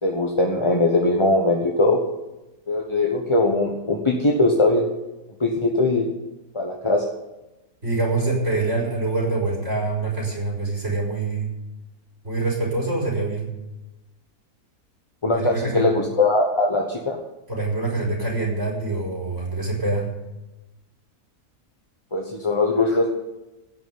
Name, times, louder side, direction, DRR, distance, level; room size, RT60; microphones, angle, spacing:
voice 1, 0.0-2.0 2.7-4.8 5.4-6.1 6.5-7.0 15.2-17.2 22.1-23.1, left 2 dB, 20° left, 0 dB, 1.2 m, -20 dB
voice 2, 7.8-11.5 12.2-13.5 15.3-15.9 17.5-20.1, right 3 dB, 50° right, -3 dB, 5.8 m, -25 dB
16.0 x 6.2 x 9.4 m, 1.0 s
omnidirectional pair, 1.6 m